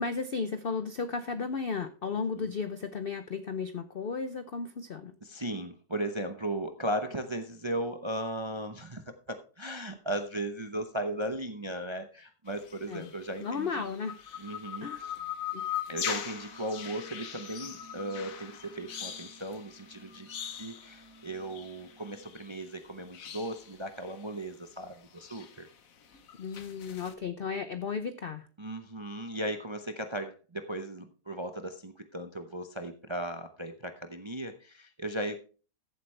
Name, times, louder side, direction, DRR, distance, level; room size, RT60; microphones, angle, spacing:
voice 1, 0.0-5.2 12.9-13.1 13.4-14.2 14.8-15.1 15.5-15.6 26.4-28.5, left 5 dB, 85° left, 11 dB, 0.5 m, -34 dB
voice 2, 5.2-13.7 14.4-15.1 15.9-25.7 28.6-35.4, right 1 dB, 35° right, 7 dB, 0.4 m, -37 dB
sound 1, 12.5-22.9 23.1-24.5 24.8-27.1, left 9 dB, 55° left, 1.3 m, -41 dB
sound 2, 15.9-22.2, right 2 dB, 85° right, 3.1 m, -55 dB
14.5 x 7.9 x 3.3 m, 0.37 s
omnidirectional pair, 1.9 m